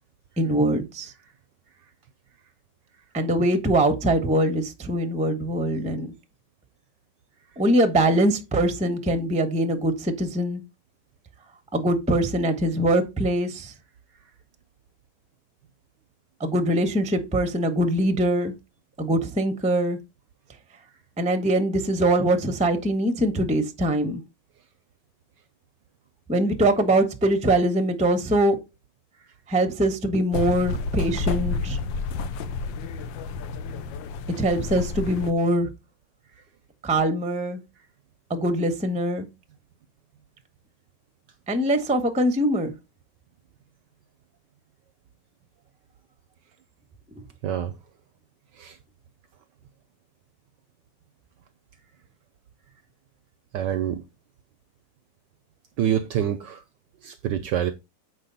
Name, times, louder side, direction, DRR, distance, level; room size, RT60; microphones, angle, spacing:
voice 1, 0.4-1.1 3.1-6.1 7.6-10.6 11.7-13.7 16.4-18.5 19.0-20.0 21.2-24.2 26.3-28.6 29.5-31.8 34.4-35.7 36.8-37.6 38.3-39.3 41.5-42.7, right 1 dB, 5° right, 0.5 m, -23 dB
sound 1, 30.3-35.3, left 4 dB, 70° left, 1.3 m, -30 dB
voice 2, 53.5-54.0 55.8-56.6 57.0-57.7, right 10 dB, 75° right, 1.0 m, -26 dB
7.5 x 4.8 x 3.9 m
omnidirectional pair, 2.3 m